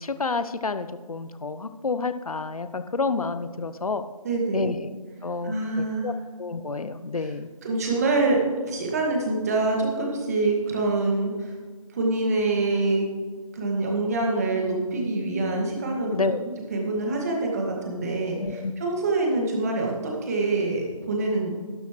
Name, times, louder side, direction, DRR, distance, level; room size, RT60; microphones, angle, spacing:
voice 1, 0.0-4.1 4.5-4.8 5.2-6.1 6.4-7.5 15.9-16.4 18.4-18.7, left 4 dB, 80° left, 11 dB, 0.8 m, -29 dB
voice 2, 4.2-4.7 5.4-6.1 7.6-8.4 8.7-11.6 11.9-13.1 13.5-16.2 16.7-21.5, right 2 dB, 25° right, -1 dB, 2.0 m, -25 dB
12.0 x 12.0 x 3.2 m, 1.5 s
figure-of-eight pair, 160°, 18 cm